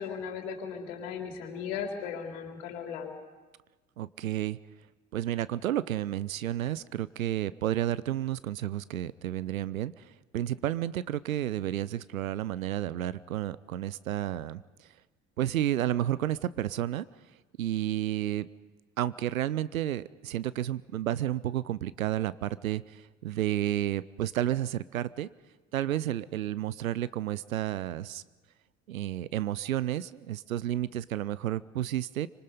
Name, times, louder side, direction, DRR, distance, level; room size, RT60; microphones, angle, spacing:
voice 1, 0.0-3.1, left 7 dB, 65° left, 2 dB, 3.5 m, -37 dB
voice 2, 4.0-4.6 5.1-10.1 10.3-14.6 15.4-17.1 17.6-18.5 19.0-25.3 25.7-28.2 28.9-32.3, right 12 dB, 80° right, 19 dB, 0.7 m, -31 dB
27.0 x 25.5 x 5.4 m, 1.2 s
figure-of-eight pair, 60°, 41 cm